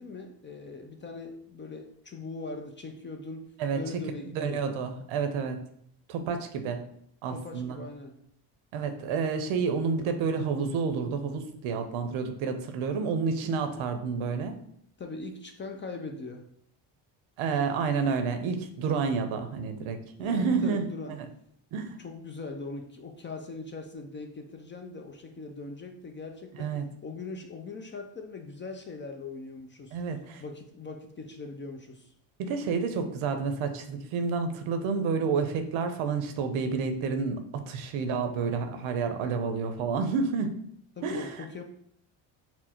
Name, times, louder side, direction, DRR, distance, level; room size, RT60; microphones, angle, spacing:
voice 1, 0.0-4.8 6.6-6.8 7.3-8.1 11.7-11.9 15.0-16.5 20.2-21.2 22.0-26.8 27.0-30.0 30.4-32.1 41.0-41.6, left 3 dB, 25° left, 4 dB, 0.4 m, -41 dB
voice 2, 4.3-5.6 6.1-6.8 7.2-7.8 8.7-14.6 17.4-21.2 21.7-22.0 26.6-26.9 29.9-30.4 32.4-40.5 41.0-41.3, right 5 dB, 75° right, 7 dB, 0.7 m, -29 dB
4.3 x 2.1 x 4.2 m, 0.67 s
cardioid pair, 95°, 49 cm